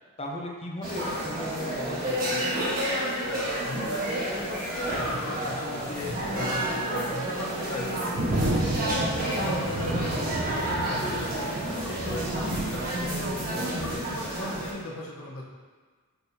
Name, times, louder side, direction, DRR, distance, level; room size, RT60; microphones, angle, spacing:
voice 1, 0.2-2.6 9.6-9.7, left 1 dB, 25° left, -1 dB, 0.8 m, -37 dB
sound 1, 0.8-14.7, right 1 dB, 40° right, 1.5 m, -30 dB
Bird, 2.8-7.9, equal, ahead, 1.2 m, -41 dB
voice 2, 3.6-8.5 9.2-13.0 13.7-15.4, left 2 dB, 70° left, -4 dB, 1.0 m, -38 dB
sound 2, 3.8-3.9 4.3-4.4 6.0-14.2, right 1 dB, 55° right, 0.8 m, -32 dB
8.3 x 5.4 x 2.8 m, 1.5 s
head